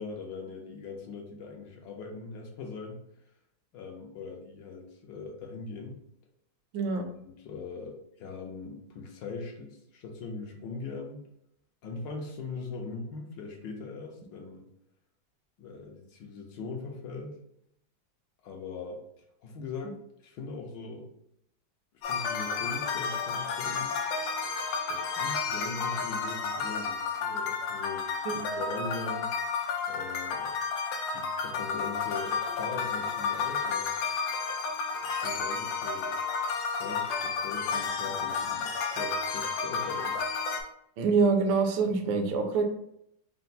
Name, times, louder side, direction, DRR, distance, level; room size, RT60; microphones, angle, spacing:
voice 1, 0.0-3.0 3.7-6.0 6.9-11.2 11.8-14.6 15.6-17.4 18.4-19.0 19.4-21.1 22.1-24.0 24.9-29.3 29.9-30.5 31.1-33.9 35.0-36.1 36.7-40.2, left 4 dB, 70° left, 1 dB, 1.3 m, -41 dB
sound 1, 22.0-40.6, left 5 dB, 85° left, 1.5 m, -32 dB
voice 2, 41.0-42.6, right 4 dB, 70° right, 3 dB, 1.3 m, -25 dB
4.3 x 2.0 x 3.9 m, 0.75 s
omnidirectional pair, 2.3 m